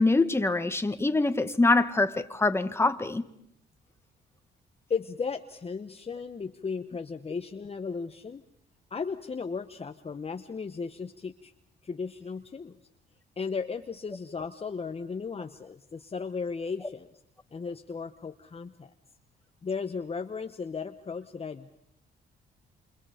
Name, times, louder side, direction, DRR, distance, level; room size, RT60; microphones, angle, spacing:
voice 1, 0.0-3.2, left 2 dB, 10° left, 1.6 m, -24 dB
voice 2, 4.9-8.4 8.9-11.5 11.8-12.8 13.4-17.1 17.5-18.9 19.6-21.8, left 5 dB, 30° left, 1.1 m, -35 dB
28.5 x 27.0 x 5.1 m
cardioid pair, 90°, 20 cm